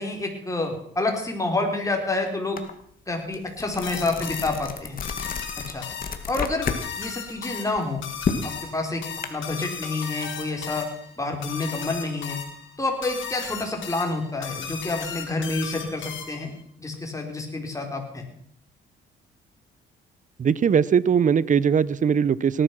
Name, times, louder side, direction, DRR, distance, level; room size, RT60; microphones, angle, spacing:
voice 1, 0.0-2.6 3.1-5.0 5.7-5.9 6.3-6.7 7.0-8.1 8.4-9.0 9.3-10.9 11.2-12.4 12.8-16.5 16.8-18.2, left 2 dB, 15° left, 2 dB, 4.5 m, -28 dB
sound 1, 2.6-2.7 3.1-6.9 7.2-9.3, left 5 dB, 45° left, 2.1 m, -31 dB
sound 2, 3.8-16.6, left 7 dB, 75° left, 3.6 m, -36 dB
voice 2, 20.4-22.6, right 7 dB, 40° right, 20 dB, 0.7 m, -20 dB
18.5 x 11.5 x 6.1 m, 0.65 s
cardioid pair, 90°, 20 cm